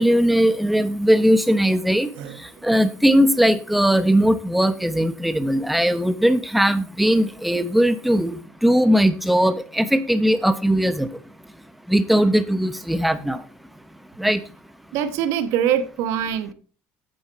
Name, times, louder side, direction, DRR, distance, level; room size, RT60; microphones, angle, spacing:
voice 1, 0.0-2.1 2.6-11.1 11.9-13.4 14.2-14.4, equal, ahead, 0.8 m, -19 dB
voice 2, 14.9-16.5, right 9 dB, 75° right, 1.3 m, -23 dB
8.8 x 8.8 x 4.2 m
supercardioid pair, 100°, 5 cm